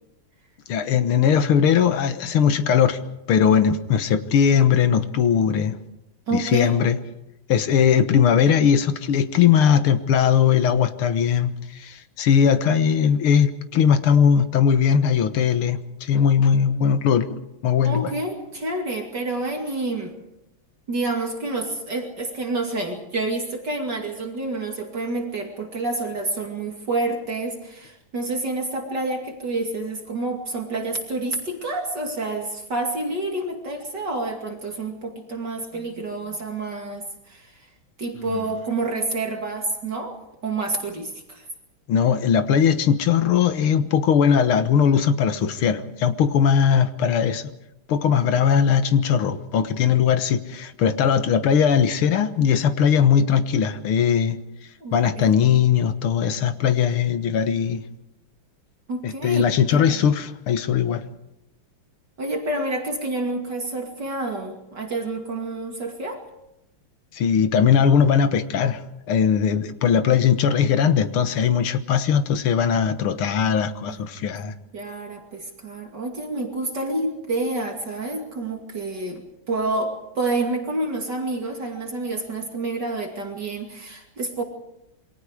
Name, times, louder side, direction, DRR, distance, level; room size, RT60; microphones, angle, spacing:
voice 1, 0.7-3.0 3.3-5.8 6.3-7.0 7.5-17.3 17.6-18.1 38.3-38.4 41.9-47.5 47.9-54.4 54.9-57.8 59.0-61.0 67.1-68.8 69.1-74.5, left 7 dB, 80° left, 11 dB, 2.1 m, -19 dB
voice 2, 6.3-6.7 17.8-20.1 20.9-37.7 38.0-40.2 40.4-41.5 54.8-55.4 58.9-60.0 62.2-66.2 73.9-74.1 74.7-84.4, right 2 dB, 50° right, 2 dB, 3.1 m, -28 dB
27.5 x 23.0 x 4.9 m, 0.89 s
omnidirectional pair, 2.4 m